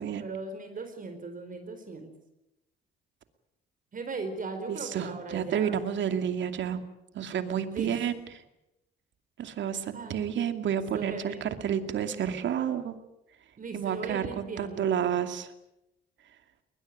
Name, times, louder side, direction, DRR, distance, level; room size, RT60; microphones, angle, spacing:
voice 1, 0.2-2.1 3.9-5.8 7.7-8.0 9.9-10.3 10.9-11.4 13.6-14.9, right 4 dB, 45° right, 7 dB, 4.3 m, -38 dB
voice 2, 4.7-6.8 7.1-8.2 9.4-13.0 13.7-15.5, right 8 dB, 70° right, 8 dB, 2.5 m, -30 dB
21.5 x 21.0 x 9.2 m, 0.89 s
cardioid pair, 90°, 20 cm